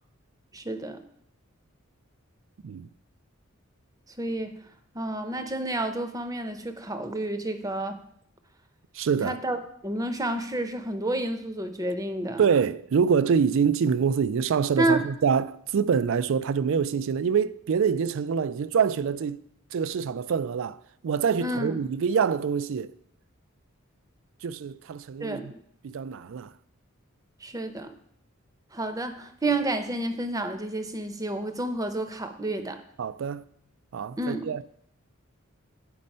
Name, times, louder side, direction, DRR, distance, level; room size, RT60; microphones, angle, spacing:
voice 1, 0.5-1.0 4.2-4.6 4.9-8.0 9.2-9.6 9.8-12.4 14.8-15.0 21.4-21.8 25.2-25.6 27.4-27.9 28.7-32.8 34.2-34.6, right 2 dB, 15° right, 0.7 m, -30 dB
voice 2, 8.9-9.4 12.4-19.4 19.7-22.9 24.4-25.5 25.8-26.5 33.0-33.4 33.9-34.6, right 6 dB, 65° right, 0.4 m, -25 dB
8.7 x 5.3 x 5.4 m
head